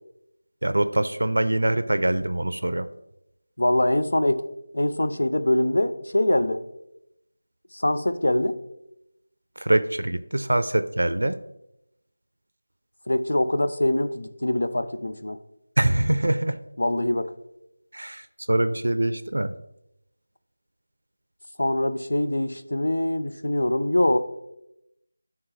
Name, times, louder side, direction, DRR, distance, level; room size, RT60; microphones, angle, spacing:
voice 1, 0.6-2.9 9.6-11.4 15.8-16.6 17.9-19.5, right 1 dB, 85° right, 11 dB, 0.4 m, -24 dB
voice 2, 3.6-4.5 4.7-6.6 7.7-8.6 13.1-15.4 16.8-17.3 21.6-24.2, left 1 dB, 80° left, 10 dB, 0.6 m, -23 dB
8.8 x 3.6 x 3.2 m, 0.85 s
figure-of-eight pair, 175°, 0 cm